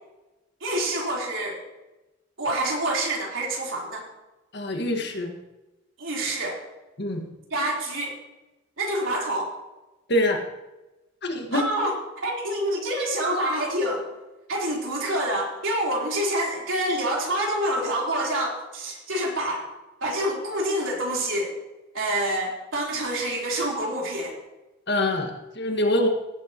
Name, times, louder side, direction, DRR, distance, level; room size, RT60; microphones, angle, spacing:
voice 1, 0.6-1.6 2.4-4.0 6.0-6.6 7.5-8.1 8.8-9.5 11.5-11.9 12.2-14.0 14.5-19.6 20.0-21.5 21.9-24.4, right 1 dB, 90° right, -2 dB, 3.9 m, -27 dB
voice 2, 4.5-5.4 7.0-7.3 10.1-10.4 11.2-11.7 24.9-26.1, left 1 dB, 60° left, 4 dB, 1.8 m, -25 dB
17.0 x 9.9 x 3.0 m, 1.0 s
head